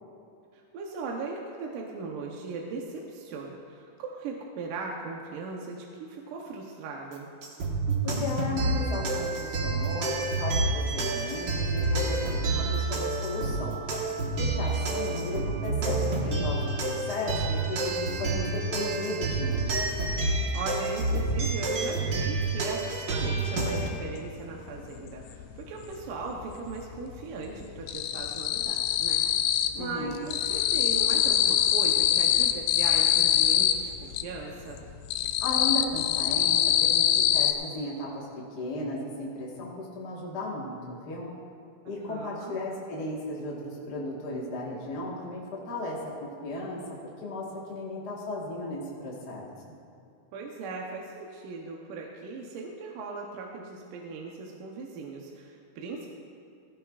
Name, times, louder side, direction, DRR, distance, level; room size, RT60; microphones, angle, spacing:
voice 1, 0.7-7.3 18.1-18.7 20.2-29.2 29.5-34.8 42.0-42.6 50.3-56.1, right 4 dB, 75° right, -1 dB, 2.4 m, -38 dB
sound 1, 7.4-23.9, right 2 dB, 50° right, 1.3 m, -29 dB
voice 2, 8.0-13.8 14.4-19.8 29.8-30.2 35.4-41.3 41.9-46.8 47.2-49.8, left 1 dB, 45° left, -4 dB, 1.4 m, -35 dB
sound 2, 24.3-24.4 24.7-25.9 26.2-26.9 27.2-29.8 30.1-34.3 34.7-37.5, left 10 dB, 80° left, 1.8 m, -24 dB
16.5 x 15.5 x 2.4 m, 2.5 s
omnidirectional pair, 3.8 m